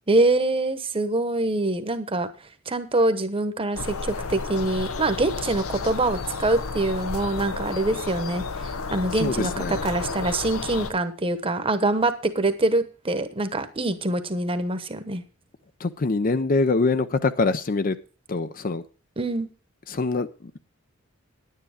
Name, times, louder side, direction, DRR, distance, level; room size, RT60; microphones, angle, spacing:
voice 1, 0.1-2.3 2.7-15.2 19.2-19.5, right 2 dB, 25° right, 10 dB, 1.0 m, -24 dB
sound 1, 3.7-10.9, left 4 dB, 90° left, 0.8 m, -32 dB
voice 2, 9.2-9.8 15.8-18.0 18.3-18.8 19.9-20.6, left 3 dB, 40° left, 12 dB, 0.5 m, -24 dB
10.0 x 9.5 x 4.9 m, 0.35 s
head